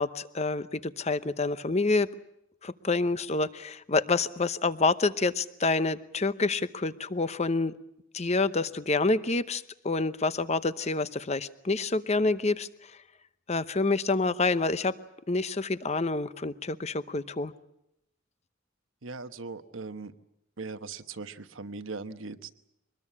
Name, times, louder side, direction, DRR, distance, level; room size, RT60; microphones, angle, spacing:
voice 1, 0.0-2.1 2.6-7.8 8.1-12.7 13.5-14.9 15.3-17.5, left 3 dB, 35° left, 14 dB, 0.8 m, -27 dB
voice 2, 19.0-20.1 20.6-22.5, right 4 dB, 90° right, 9 dB, 1.2 m, -39 dB
24.5 x 20.5 x 8.5 m, 0.81 s
head